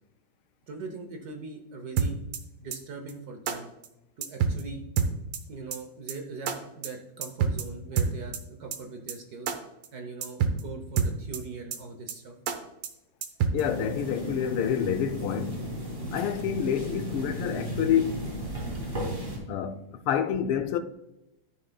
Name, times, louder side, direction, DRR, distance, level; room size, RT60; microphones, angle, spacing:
voice 1, 0.7-2.2 2.6-3.7 4.2-4.8 5.5-9.5 9.9-12.3 18.7-18.8, right 4 dB, 60° right, 1.1 m, -41 dB
sound 1, 2.0-2.4 2.7-2.8 3.1-3.2 3.5-3.6 3.8-3.9 4.2-4.6 5.0-5.4 5.7-5.8 6.1-6.2 6.5-6.6 6.8-6.9 7.2-7.6 8.0-8.4 8.7-8.8 9.1-9.2 9.5-9.6 9.8-9.9 10.2-10.6 11.0-11.4 11.7-11.8 12.1-12.2 12.5-12.6 12.8-12.9 13.2-13.6, right 6 dB, 80° right, 1.7 m, -26 dB
voice 2, 13.5-15.6 16.1-18.2 19.5-20.8, left 9 dB, 80° left, 1.4 m, -28 dB
sound 2, 13.6-19.4, equal, 25° right, 2.9 m, -35 dB
13.0 x 6.4 x 2.3 m
omnidirectional pair, 2.4 m